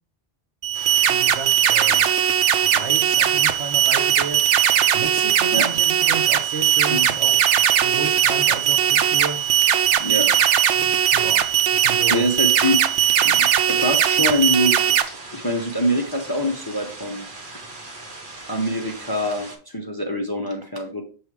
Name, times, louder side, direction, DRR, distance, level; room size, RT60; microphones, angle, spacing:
sound 1, 0.6-15.0, right 9 dB, 90° right, 0.9 m, -19 dB
sound 2, 0.7-19.6, right 2 dB, 50° right, 1.3 m, -39 dB
voice 1, 1.1-2.1 2.6-4.4 4.9-7.4 7.8-9.4 10.7-11.4 11.7-12.3, right 5 dB, 75° right, 6 dB, 1.3 m, -33 dB
voice 2, 10.0-10.3 12.1-17.3 18.5-21.0, equal, 25° left, 2 dB, 0.7 m, -25 dB
6.3 x 3.3 x 4.7 m, 0.39 s
omnidirectional pair, 1.2 m